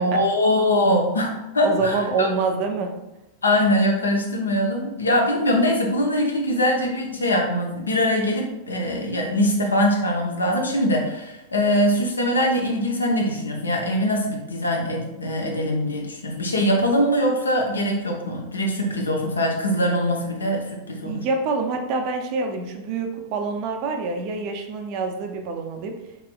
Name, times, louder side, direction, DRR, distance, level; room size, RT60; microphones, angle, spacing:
voice 1, 0.0-2.3 3.4-21.2, equal, 75° left, 0 dB, 0.6 m, -22 dB
voice 2, 1.6-2.9 21.1-25.9, right 4 dB, 45° right, 4 dB, 0.4 m, -26 dB
3.0 x 2.9 x 2.2 m, 0.92 s
figure-of-eight pair, 90°, 0 cm